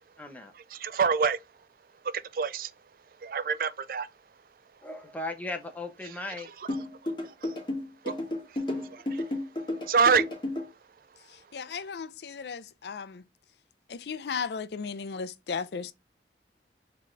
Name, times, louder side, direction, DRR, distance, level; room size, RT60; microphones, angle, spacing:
voice 1, 0.2-0.5 4.8-6.5, left 2 dB, 10° left, 0.8 m, -37 dB
voice 2, 0.7-1.4 2.3-2.7 3.2-4.1 8.0-8.1 8.9-9.2 9.9-10.2, right 5 dB, 50° right, 0.3 m, -25 dB
sound 1, 6.7-10.7, left 1 dB, 25° left, 1.9 m, -32 dB
voice 3, 11.5-13.2 13.9-15.9, left 5 dB, 70° left, 0.4 m, -35 dB
4.1 x 3.7 x 3.2 m
head